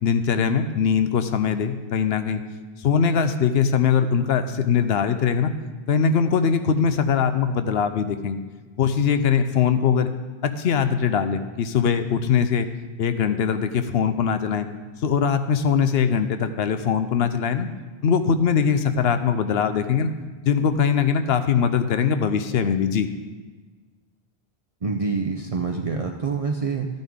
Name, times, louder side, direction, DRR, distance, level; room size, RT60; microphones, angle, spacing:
voice 1, 0.0-2.4 2.8-5.5 5.9-8.4 8.8-10.1 10.4-12.7 13.0-14.7 15.0-17.7 18.0-20.1 20.5-23.1, left 7 dB, 80° left, 9 dB, 0.9 m, -21 dB
voice 2, 24.8-26.9, right 4 dB, 40° right, 2 dB, 0.6 m, -26 dB
12.5 x 9.2 x 3.6 m, 1.3 s
omnidirectional pair, 1.0 m